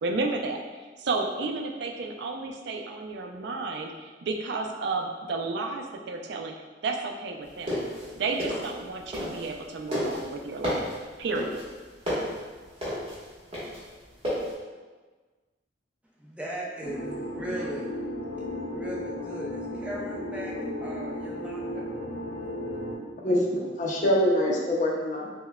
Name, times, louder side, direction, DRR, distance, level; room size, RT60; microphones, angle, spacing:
voice 1, 0.0-6.5 6.8-7.7 8.1-10.9 11.2-11.6, right 3 dB, 65° right, 3 dB, 0.4 m, -32 dB
sound 1, 7.5-9.6 9.9-14.5, equal, 30° right, 1.2 m, -31 dB
voice 2, 16.2-17.9 18.5-20.5 20.8-21.9, right 1 dB, 5° right, -4 dB, 0.5 m, -38 dB
sound 2, 16.8-22.9, left 1 dB, 80° left, 0.7 m, -34 dB
voice 3, 23.2-25.3, left 1 dB, 45° left, -2 dB, 0.6 m, -24 dB
5.5 x 2.2 x 2.2 m, 1.4 s
head